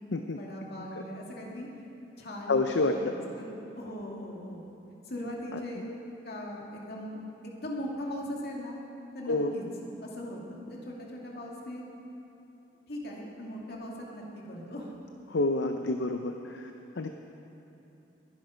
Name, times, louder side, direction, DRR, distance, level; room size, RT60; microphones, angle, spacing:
voice 1, 0.3-1.7 2.2-2.6 2.9-4.6 5.0-8.8 9.1-9.6 10.0-11.8 12.9-14.9, left 1 dB, 60° left, -3 dB, 2.5 m, -39 dB
voice 2, 2.5-3.1 5.5-5.9 9.3-9.5 15.3-16.7 17.0-17.2, left 2 dB, 75° left, 5 dB, 0.6 m, -29 dB
21.5 x 10.5 x 5.1 m, 3.0 s
head